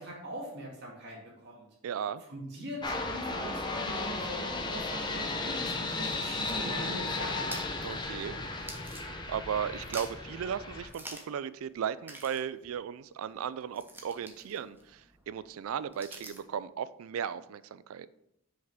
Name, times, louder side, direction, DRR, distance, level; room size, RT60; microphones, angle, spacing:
voice 1, 0.0-1.7 2.3-7.6, right 1 dB, 55° right, 2.0 m, -41 dB
voice 2, 1.8-2.2 7.8-8.4 8.9-9.0 9.3-18.1, right 8 dB, 90° right, 0.3 m, -36 dB
sound 1, 2.8-10.9, left 3 dB, 20° left, 0.6 m, -35 dB
sound 2, 6.3-9.5 9.8-10.4 10.9-11.4 11.7-11.8 12.0-16.6, right 2 dB, 10° right, 0.8 m, -48 dB
5.9 x 5.1 x 3.5 m
head